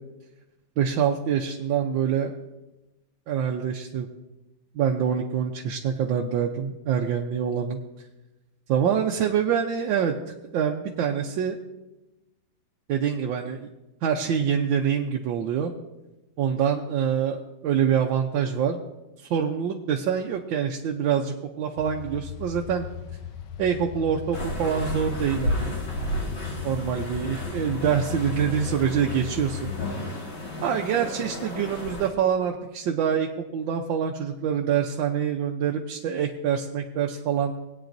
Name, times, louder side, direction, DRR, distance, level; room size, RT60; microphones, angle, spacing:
voice 1, 0.8-2.3 3.3-4.1 4.7-7.8 8.7-10.1 10.5-11.6 12.9-13.7 14.0-15.7 16.4-18.8 19.2-22.9 23.6-25.9 26.6-29.7 30.6-37.5, right 8 dB, 75° right, 1 dB, 1.4 m, -25 dB
sound 1, 21.8-29.9, left 9 dB, 85° left, 1.6 m, -36 dB
sound 2, 24.3-32.1, left 1 dB, 70° left, 2.5 m, -33 dB
20.0 x 9.0 x 2.6 m, 1.0 s
omnidirectional pair, 2.2 m